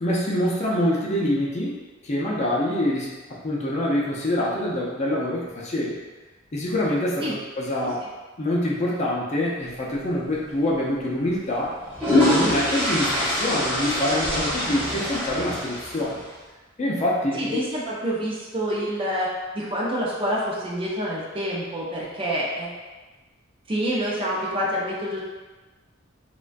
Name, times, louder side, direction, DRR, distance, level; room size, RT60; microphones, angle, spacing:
voice 1, 0.0-6.0 6.5-8.0 8.4-11.8 12.2-16.2 16.8-17.6, left 1 dB, 35° left, -5 dB, 0.4 m, -25 dB
sound 1, 10.3-10.5 11.6-16.2, left 1 dB, 10° right, 0.8 m, -24 dB
voice 2, 17.3-19.3 19.5-22.8 23.7-25.2, equal, 25° right, -5 dB, 0.4 m, -27 dB
2.4 x 2.2 x 2.4 m, 1.2 s
head